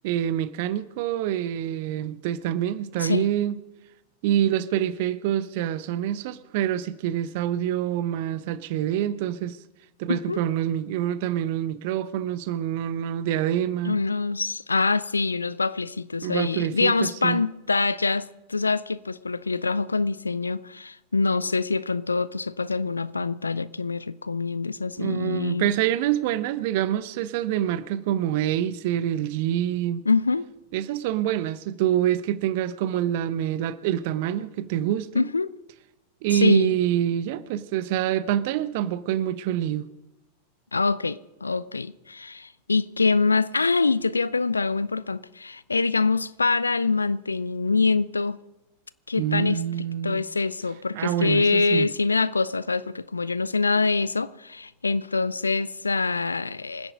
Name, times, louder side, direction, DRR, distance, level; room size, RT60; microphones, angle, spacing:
voice 1, 0.0-3.5 4.2-9.6 10.0-14.0 16.2-17.4 25.0-30.0 30.7-35.3 36.2-39.9 49.2-50.2 50.9-51.9, right 11 dB, 50° right, 0.8 m, -26 dB
voice 2, 10.1-10.4 13.8-25.7 30.1-30.5 35.1-35.5 36.3-36.7 40.7-48.4 49.1-49.6 50.0-56.9, left 4 dB, 80° left, 0.5 m, -25 dB
25.0 x 10.0 x 5.2 m
figure-of-eight pair, 90°, 0 cm